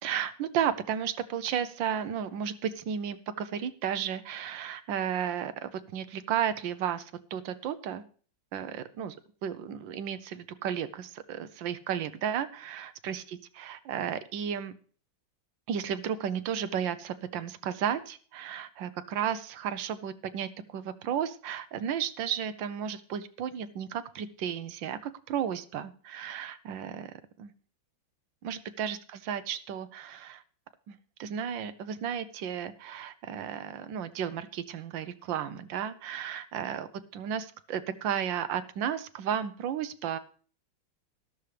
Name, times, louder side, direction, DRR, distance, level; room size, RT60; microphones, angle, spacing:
voice 1, 0.0-8.0 8.5-9.1 9.4-14.7 15.7-27.5 28.4-29.0 29.3-30.4 30.9-36.9 37.1-40.2, right 9 dB, 80° right, 12 dB, 1.4 m, -33 dB
12.5 x 12.5 x 3.3 m, 0.43 s
omnidirectional pair, 2.1 m